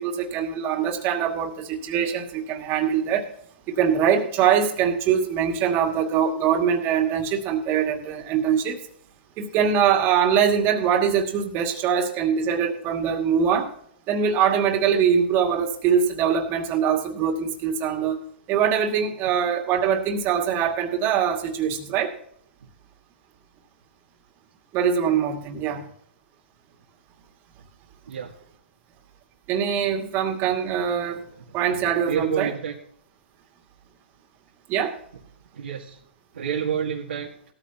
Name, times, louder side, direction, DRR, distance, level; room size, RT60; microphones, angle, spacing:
voice 1, 0.0-3.3 3.7-8.8 9.4-13.7 14.1-18.2 18.5-22.1 24.7-25.8 29.5-31.3 31.5-32.5 34.7-35.0, right 8 dB, 35° right, 2 dB, 2.4 m, -23 dB
voice 2, 31.5-32.8 35.5-36.0 36.3-37.3, right 8 dB, 80° right, -2 dB, 2.0 m, -29 dB
17.5 x 13.5 x 3.0 m, 0.66 s
hypercardioid pair, 125°, 6 cm